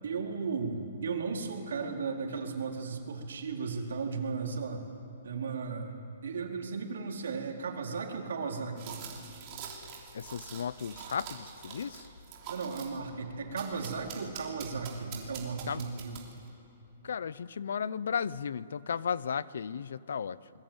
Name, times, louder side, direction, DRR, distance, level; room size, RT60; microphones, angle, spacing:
voice 1, 0.0-4.8 5.2-9.0 12.5-16.2, right 5 dB, 75° right, 1 dB, 4.2 m, -35 dB
sound 1, 8.8-16.0, left 4 dB, 85° left, 3.2 m, -55 dB
sound 2, 8.8-13.0 13.6-16.5, right 8 dB, 25° right, 3.2 m, -45 dB
voice 2, 10.1-12.1 15.7-16.0 17.0-20.5, left 7 dB, 70° left, 19 dB, 0.7 m, -35 dB
28.5 x 21.5 x 8.9 m, 2.9 s
hypercardioid pair, 175°, 0 cm